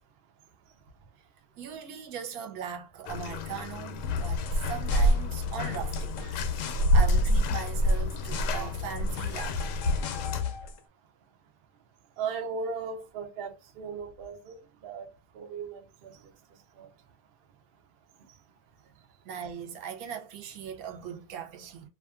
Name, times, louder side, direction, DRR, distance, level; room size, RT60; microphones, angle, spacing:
voice 1, 1.6-9.7 19.2-21.9, right 8 dB, 70° right, 1.0 m, -39 dB
Bathtub (filling or washing), 3.1-10.4, equal, 90° left, 1.2 m, -27 dB
sound 1, 4.0-10.8, left 8 dB, 70° left, 0.8 m, -36 dB
voice 2, 12.2-14.5 14.8-15.1 15.3-16.1 16.8-16.9, right 5 dB, 85° right, 0.5 m, -36 dB
2.7 x 2.4 x 2.3 m
omnidirectional pair, 1.8 m